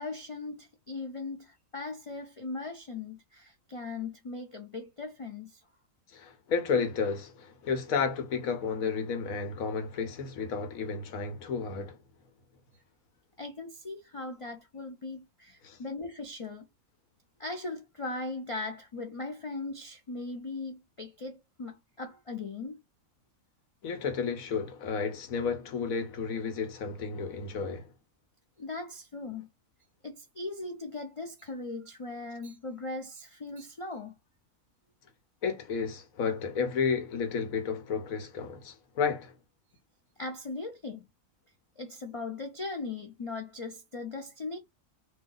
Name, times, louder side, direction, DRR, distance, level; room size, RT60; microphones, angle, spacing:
voice 1, 0.0-5.6 13.4-16.7 17.4-22.8 28.6-29.5 30.0-34.2 40.2-41.0 41.8-44.6, left 3 dB, 50° left, 0.3 m, -39 dB
voice 2, 6.1-12.0 15.6-15.8 23.8-27.9 35.4-39.3, left 5 dB, 90° left, 1.3 m, -32 dB
2.8 x 2.3 x 3.8 m
omnidirectional pair, 1.4 m